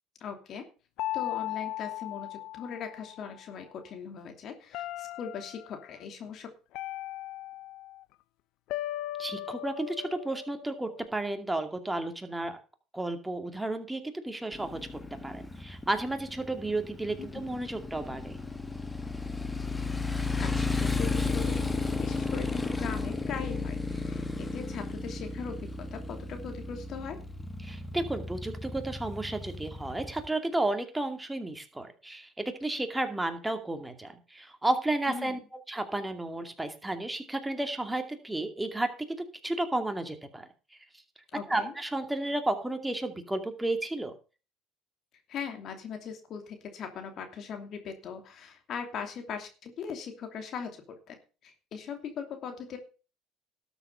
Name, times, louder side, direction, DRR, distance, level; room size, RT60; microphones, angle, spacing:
voice 1, 0.2-0.6 1.1-6.5 17.3-17.6 20.4-21.7 22.0-27.2 35.1-35.4 41.3-41.7 45.3-51.1 51.4-52.8, left 6 dB, 50° left, 5 dB, 2.8 m, -40 dB
sound 1, 1.0-3.3 4.7-5.8 6.7-8.0 8.7-11.1, left 14 dB, 65° left, 0.7 m, -37 dB
voice 2, 9.2-12.6 12.9-14.8 15.2-18.4 27.6-39.2 39.4-40.5 41.5-44.1, right 2 dB, 10° right, 7 dB, 2.4 m, -32 dB
Motorcycle, 14.5-30.3, left 3 dB, 10° left, 1.5 m, -34 dB
12.5 x 7.2 x 5.5 m, 0.34 s
supercardioid pair, 95°, 0 cm